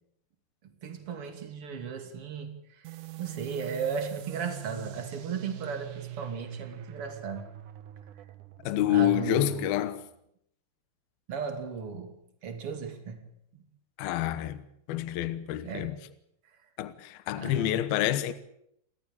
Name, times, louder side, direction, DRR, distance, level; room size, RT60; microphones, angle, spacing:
voice 1, 0.8-2.6 3.2-7.4 8.9-9.7 11.3-13.2 13.5-13.6 15.6-15.9 17.4-17.8, right 5 dB, 35° right, 3.2 m, -36 dB
sound 1, 2.8-10.1, right 12 dB, 65° right, 2.2 m, -44 dB
voice 2, 8.6-10.0 14.0-14.6 14.9-16.0 16.8-18.3, left 12 dB, 75° left, 2.8 m, -28 dB
29.5 x 14.0 x 8.8 m
omnidirectional pair, 4.7 m